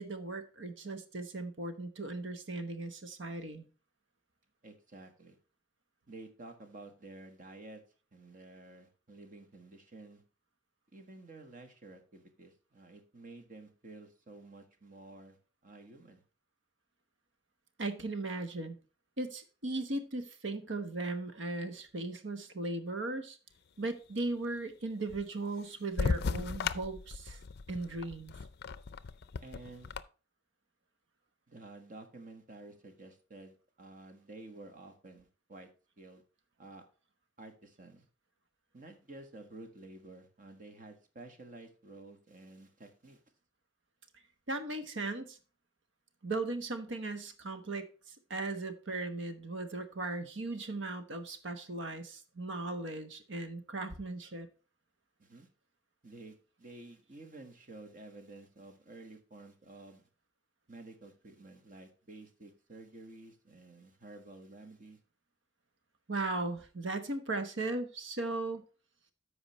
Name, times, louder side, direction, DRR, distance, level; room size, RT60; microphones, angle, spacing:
voice 1, 0.0-3.7 17.8-18.8 19.2-23.4 23.8-27.4 27.7-28.3 44.5-45.4 46.2-47.9 48.3-54.5 66.1-68.6, right 2 dB, 70° right, 9 dB, 1.1 m, -37 dB
voice 2, 4.6-5.4 6.1-7.8 8.1-10.2 10.9-15.4 15.6-16.2 29.4-29.9 31.5-35.7 36.0-36.2 36.6-36.8 37.4-38.0 38.7-43.2 55.2-55.5 56.0-60.1 60.7-65.0, right 2 dB, 45° right, 6 dB, 1.5 m, -51 dB
sound 1, 26.0-30.0, left 4 dB, 55° left, 0.4 m, -36 dB
13.5 x 4.9 x 3.1 m, 0.35 s
head